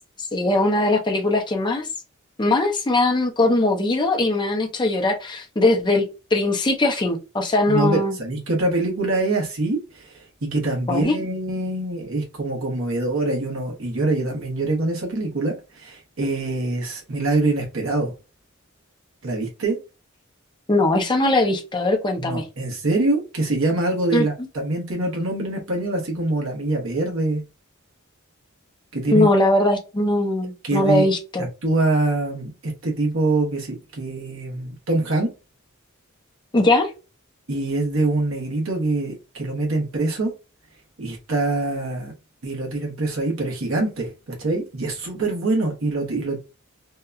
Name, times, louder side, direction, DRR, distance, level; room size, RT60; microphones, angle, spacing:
voice 1, 0.2-1.9 2.4-8.1 10.9-11.2 20.7-22.4 24.1-24.3 29.1-31.4 36.5-36.9, left 2 dB, 20° left, 0.6 m, -20 dB
voice 2, 7.7-18.1 19.2-19.8 22.2-27.4 28.9-29.3 30.6-31.1 31.4-35.3 37.5-40.3 41.0-42.1 42.4-46.4, right 2 dB, 70° right, 1.0 m, -24 dB
2.8 x 2.2 x 2.3 m
head